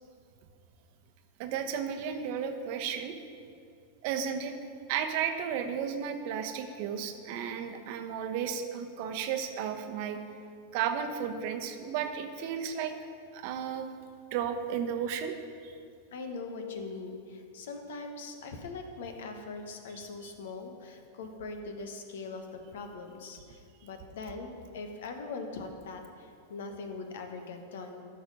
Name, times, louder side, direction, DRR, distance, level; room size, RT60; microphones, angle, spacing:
voice 1, 1.4-3.1 4.0-4.5 4.9-10.2 10.7-12.9 13.3-13.9 14.3-15.3 15.6-15.7, right 8 dB, 50° right, 7 dB, 0.9 m, -33 dB
voice 2, 16.1-28.0, left 3 dB, 65° left, 5 dB, 1.1 m, -41 dB
13.5 x 5.5 x 5.2 m, 2.3 s
figure-of-eight pair, 90°, 0 cm